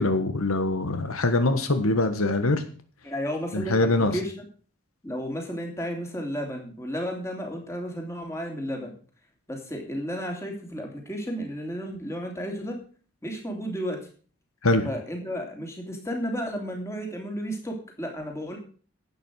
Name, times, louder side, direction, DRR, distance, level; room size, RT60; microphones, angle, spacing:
voice 1, 0.0-2.6 3.5-4.2 14.6-14.9, left 2 dB, 80° left, 8 dB, 1.5 m, -23 dB
voice 2, 3.0-3.9 4.1-4.4 5.0-8.9 9.5-12.8 13.2-14.1 14.8-18.6, equal, 15° left, 1 dB, 3.1 m, -33 dB
11.5 x 8.8 x 6.4 m, 0.41 s
head